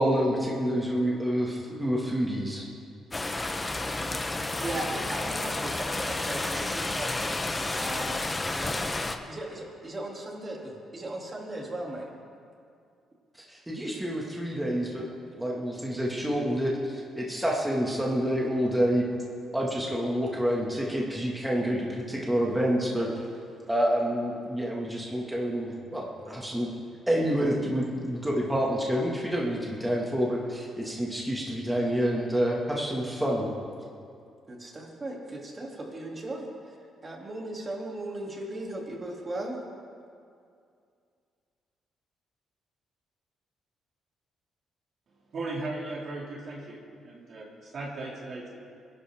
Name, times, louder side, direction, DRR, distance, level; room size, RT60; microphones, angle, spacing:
voice 1, 0.0-2.6 13.5-15.0 15.4-19.0 19.5-23.1 23.7-26.7 27.1-33.5, equal, 10° right, -3 dB, 2.2 m, -28 dB
sound 1, 3.1-9.2, left 2 dB, 20° left, 1.0 m, -31 dB
voice 2, 4.6-8.8 9.3-12.1 14.6-15.5 34.5-36.8 37.0-39.6, right 1 dB, 30° right, -1 dB, 3.1 m, -38 dB
voice 3, 45.3-48.5, right 2 dB, 55° right, -2 dB, 2.8 m, -37 dB
21.5 x 11.5 x 3.8 m, 2.4 s
cardioid pair, 90°, 0 cm